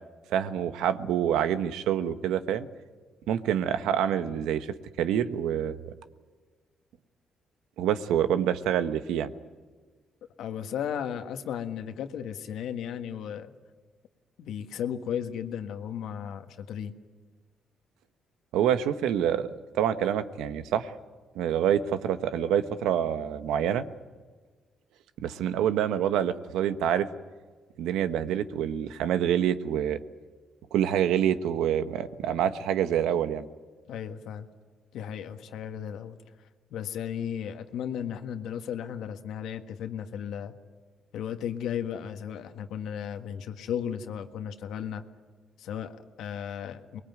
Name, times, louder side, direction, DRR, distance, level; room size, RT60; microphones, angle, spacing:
voice 1, 0.3-2.7 3.3-4.7 5.0-5.9 7.8-9.3 18.5-20.9 21.3-23.9 25.2-27.1 27.8-30.0 30.7-33.5, right 9 dB, 90° right, 11 dB, 1.2 m, -26 dB
voice 2, 10.4-13.5 14.4-16.9 33.9-34.5 34.9-36.2 36.7-40.5 41.1-45.0 45.6-47.0, left 8 dB, 80° left, 7 dB, 1.6 m, -35 dB
24.0 x 21.0 x 9.5 m, 1.4 s
cardioid pair, 90°, 0 cm